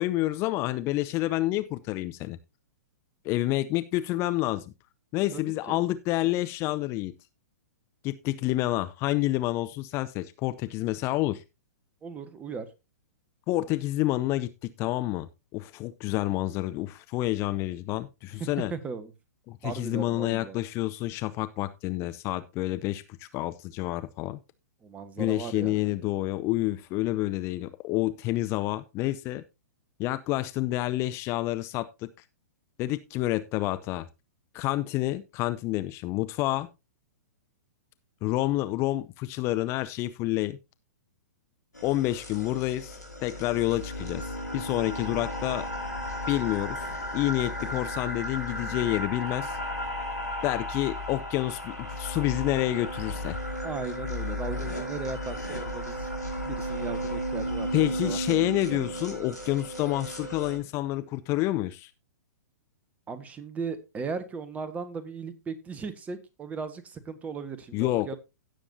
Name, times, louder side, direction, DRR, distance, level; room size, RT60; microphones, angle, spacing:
voice 1, 0.0-2.4 3.2-4.6 5.1-7.1 8.0-11.4 13.5-14.5 14.8-15.3 15.5-18.7 19.5-24.4 25.2-29.4 30.0-32.1 32.8-34.1 34.5-36.7 38.2-40.6 41.8-45.7 46.3-46.8 47.1-49.6 50.4-53.4 57.7-61.9 67.7-68.2, left 17 dB, 30° left, 13 dB, 0.6 m, -28 dB
voice 2, 5.3-5.8 12.0-12.7 18.4-19.1 19.6-20.6 24.8-25.8 53.6-56.1 56.4-58.9 63.1-68.2, right 5 dB, 15° right, 12 dB, 1.3 m, -37 dB
sound 1, 41.7-60.6, equal, 85° left, 4.6 m, -34 dB
16.5 x 7.2 x 2.7 m, 0.25 s
figure-of-eight pair, 110°, 9 cm